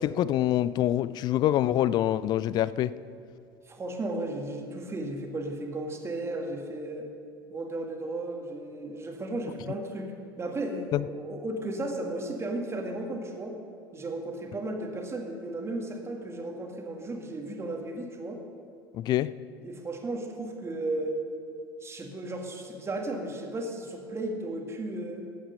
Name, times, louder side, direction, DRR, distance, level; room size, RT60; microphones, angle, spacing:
voice 1, 0.0-2.9 10.9-11.0 18.9-19.3, left 12 dB, 35° left, 18 dB, 0.3 m, -25 dB
voice 2, 3.7-7.1 7.5-13.5 13.9-18.4 19.6-21.2 21.8-25.3, right 2 dB, 20° right, 2 dB, 1.8 m, -34 dB
14.0 x 8.7 x 5.5 m, 2.4 s
figure-of-eight pair, 70°, 13 cm